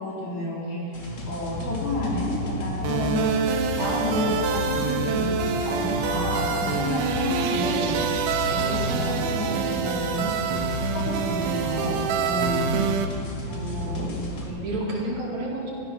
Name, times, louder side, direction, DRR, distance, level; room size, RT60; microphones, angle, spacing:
voice 1, 0.0-3.4 3.8-5.3 5.6-7.9 8.5-10.6 10.9-12.0 12.2-12.8 13.8-14.1 14.4-14.6, left 1 dB, 80° left, -5 dB, 5.6 m, -30 dB
sound 1, 0.9-14.5, left 2 dB, 35° left, 2.2 m, -33 dB
sound 2, 2.8-13.1, right 6 dB, 80° right, 2.7 m, -26 dB
voice 2, 13.5-15.7, right 1 dB, 55° right, -3 dB, 3.3 m, -32 dB
16.5 x 13.0 x 6.1 m, 2.6 s
omnidirectional pair, 4.3 m